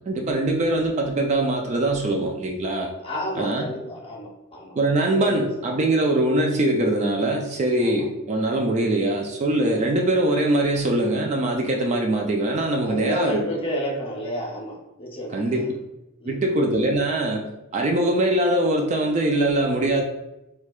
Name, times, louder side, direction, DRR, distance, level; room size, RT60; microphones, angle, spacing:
voice 1, 0.1-2.9 3.4-3.7 4.7-13.5 15.3-15.7 16.3-20.0, right 1 dB, 30° right, 2 dB, 0.3 m, -22 dB
voice 2, 3.0-4.8 5.2-5.5 7.8-8.0 12.8-15.7 16.2-16.4, equal, 25° left, -2 dB, 0.7 m, -31 dB
4.4 x 2.2 x 2.3 m, 0.93 s
head